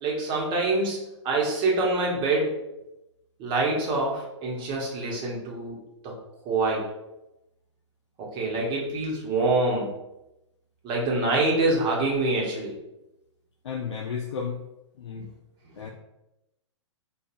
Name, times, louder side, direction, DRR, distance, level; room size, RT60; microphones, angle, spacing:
voice 1, 0.0-2.6 3.4-5.8 6.0-6.1 6.4-6.8 8.2-9.9 10.8-12.8, right 2 dB, 30° right, -2 dB, 1.0 m, -25 dB
voice 2, 13.6-14.6 15.0-15.3 15.8-15.9, left 6 dB, 70° left, 3 dB, 0.4 m, -33 dB
5.2 x 2.4 x 2.5 m, 0.93 s
hypercardioid pair, 120°, 16 cm